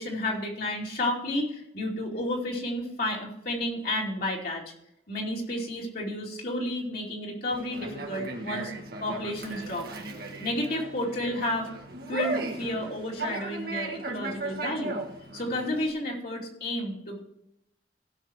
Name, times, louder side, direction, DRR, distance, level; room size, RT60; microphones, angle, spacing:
voice 1, 0.0-4.6 5.1-8.7 9.0-9.9 10.4-11.7 12.1-15.0 15.3-17.2, left 1 dB, 55° left, -2 dB, 2.7 m, -31 dB
Conversation, 7.5-15.9, right 2 dB, 55° right, 1.7 m, -37 dB
16.5 x 6.3 x 4.5 m, 0.79 s
head